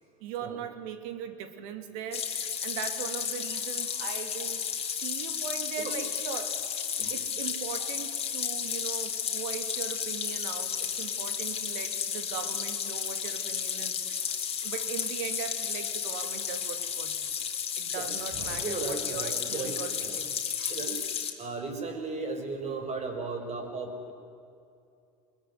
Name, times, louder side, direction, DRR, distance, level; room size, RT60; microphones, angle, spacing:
voice 1, 0.2-4.6 4.9-6.6 6.9-14.2 14.6-17.2 17.8-20.3, right 8 dB, 65° right, 8 dB, 2.8 m, -39 dB
sound 1, 2.1-21.3, left 7 dB, 30° left, 3.3 m, -33 dB
voice 2, 17.9-20.2 20.6-21.0 21.4-24.1, right 3 dB, 35° right, 6 dB, 5.8 m, -36 dB
24.5 x 21.5 x 9.7 m, 2.5 s
hypercardioid pair, 80°, 20 cm